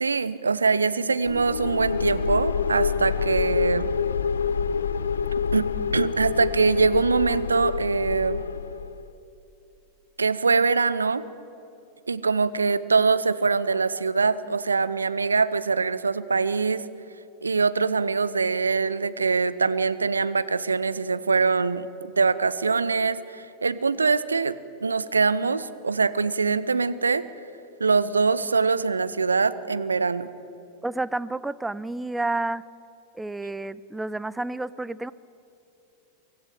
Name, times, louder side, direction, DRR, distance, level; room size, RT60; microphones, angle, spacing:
voice 1, 0.0-3.9 5.5-8.4 10.2-11.2 12.1-16.8 17.4-27.2 27.8-30.3, right 4 dB, 75° right, 15 dB, 0.7 m, -23 dB
sound 1, 1.3-9.0, left 6 dB, 70° left, 0.6 m, -27 dB
voice 2, 30.8-32.6 33.1-35.1, right 2 dB, 5° right, 17 dB, 0.5 m, -30 dB
24.0 x 15.5 x 8.9 m, 2.8 s
figure-of-eight pair, 90°, 0 cm